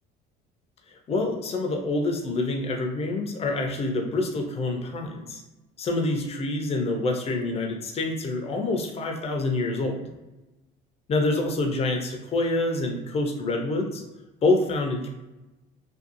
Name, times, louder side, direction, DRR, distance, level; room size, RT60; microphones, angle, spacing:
voice 1, 0.9-5.4 5.8-10.0 11.1-14.0 14.4-15.1, left 2 dB, 30° left, 2 dB, 0.5 m, -26 dB
2.6 x 2.3 x 2.5 m, 1.0 s
supercardioid pair, 95°, 21 cm